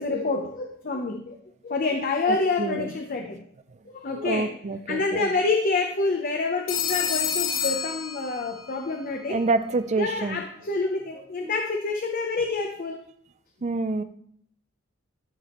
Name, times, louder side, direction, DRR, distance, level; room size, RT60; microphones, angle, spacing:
voice 1, 0.0-1.4 1.6-3.4 3.9-4.5 4.9-9.4 10.0-13.0, left 3 dB, 45° left, 3 dB, 0.7 m, -27 dB
voice 2, 2.3-2.9 3.7-3.8 4.2-5.3 9.3-10.4 11.4-11.5 13.6-14.0, right 3 dB, 35° right, 12 dB, 0.4 m, -27 dB
Telephone, 6.7-8.7, left 7 dB, 75° left, 1.1 m, -28 dB
13.0 x 4.9 x 3.0 m, 0.67 s
head